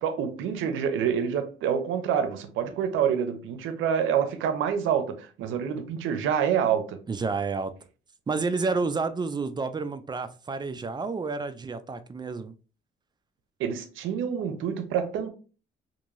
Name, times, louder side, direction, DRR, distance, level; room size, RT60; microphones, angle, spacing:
voice 1, 0.0-7.0 13.6-15.3, right 8 dB, 85° right, 0.6 m, -27 dB
voice 2, 7.1-7.7 8.3-12.5, right 4 dB, 20° right, 0.3 m, -30 dB
2.9 x 2.6 x 2.4 m
cardioid pair, 90°, 20 cm